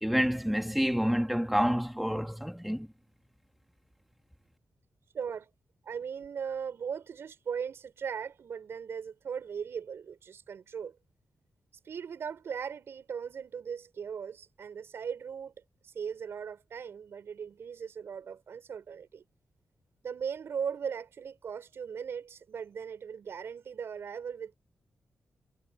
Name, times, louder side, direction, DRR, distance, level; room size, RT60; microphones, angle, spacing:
voice 1, 0.0-2.9, equal, ahead, 2.4 m, -28 dB
voice 2, 5.1-5.5 5.8-11.0 11.8-15.5 15.8-19.2 20.0-24.6, right 7 dB, 75° right, 7.5 m, -38 dB
cardioid pair, 55°, 4 cm